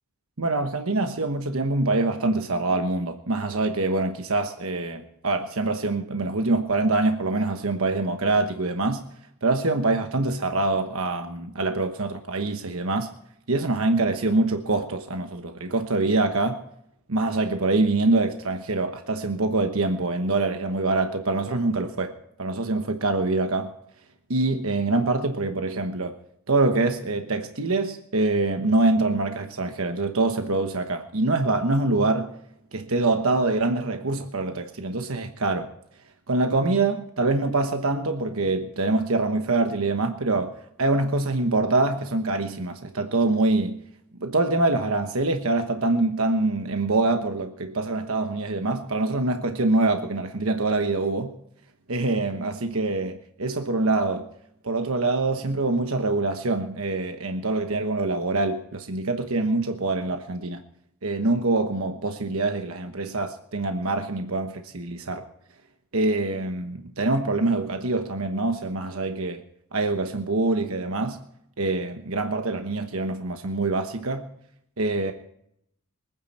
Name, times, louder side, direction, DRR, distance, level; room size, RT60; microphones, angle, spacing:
voice 1, 0.4-9.0 9.4-13.1 13.5-16.6 17.1-22.1 22.4-23.7 24.3-26.2 26.5-32.3 32.7-35.7 36.3-43.8 44.2-51.3 51.9-54.3 54.6-60.6 61.0-65.2 65.9-69.4 69.7-71.2 71.6-74.3 74.8-75.1, right 2 dB, 75° right, 1.2 m, -25 dB
24.5 x 9.6 x 4.3 m
head